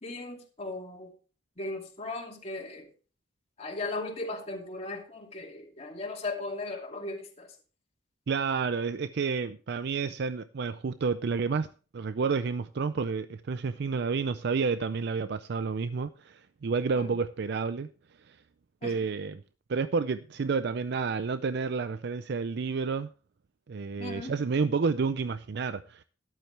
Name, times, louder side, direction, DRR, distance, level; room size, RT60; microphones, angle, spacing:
voice 1, 0.0-1.1 1.6-2.9 3.6-7.5 16.9-17.2 18.8-19.1 24.0-24.4, left 2 dB, 35° left, 2.5 m, -37 dB
voice 2, 8.3-11.7 11.9-17.9 18.3-18.4 18.8-19.4 19.7-23.1 23.7-26.0, right 5 dB, 60° right, 0.4 m, -30 dB
13.5 x 11.0 x 3.3 m
head